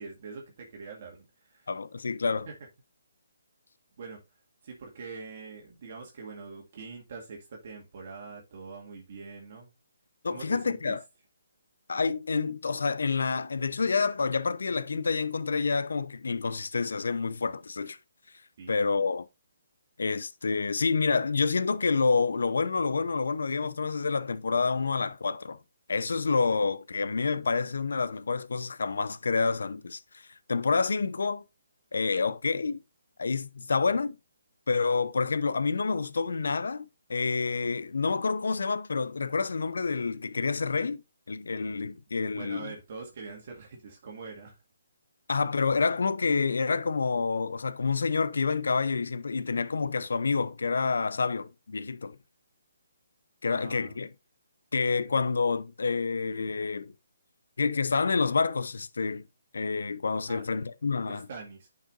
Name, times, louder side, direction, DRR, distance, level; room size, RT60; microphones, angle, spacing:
voice 1, 0.0-1.7 2.5-2.6 4.0-4.2 4.6-9.7 10.3-11.0 18.6-18.8 42.3-44.6 53.5-54.0 60.3-60.4 61.0-61.7, right 4 dB, 50° right, 2.1 m, -43 dB
voice 2, 1.7-2.5 10.2-11.0 11.9-18.0 18.7-19.3 20.0-25.6 25.9-31.4 31.9-32.8 33.2-34.2 34.7-41.0 41.3-42.7 45.3-52.2 53.4-54.1 54.7-56.9 57.6-59.3 59.5-61.3, left 4 dB, 75° left, 0.7 m, -28 dB
10.0 x 5.7 x 2.6 m
hypercardioid pair, 150°, 0 cm